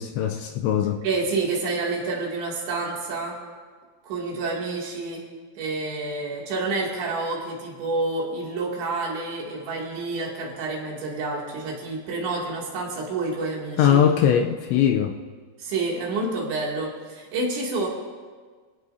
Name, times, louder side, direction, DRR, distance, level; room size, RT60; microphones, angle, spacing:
voice 1, 0.0-1.0 13.8-15.2, left 9 dB, 80° left, 4 dB, 2.8 m, -21 dB
voice 2, 1.0-3.4 4.0-5.3 5.6-14.0 15.6-17.9, right 3 dB, 65° right, -3 dB, 4.8 m, -28 dB
26.5 x 17.5 x 2.7 m, 1.5 s
omnidirectional pair, 5.7 m